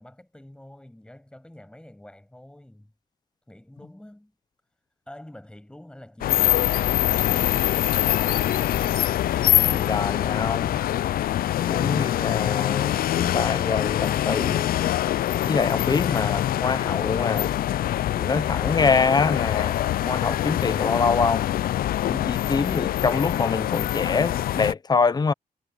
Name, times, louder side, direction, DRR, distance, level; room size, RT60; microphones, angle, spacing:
voice 1, 0.0-2.9 3.5-4.3 5.1-8.5, left 1 dB, 5° left, 7.9 m, -46 dB
sound 1, 6.2-24.7, left 12 dB, 70° left, 0.4 m, -24 dB
voice 2, 9.7-10.8 11.6-14.7 15.4-17.5 18.2-19.8 20.0-21.4 22.0-25.3, left 4 dB, 25° left, 0.8 m, -25 dB
wide cardioid pair, 150°, 16 cm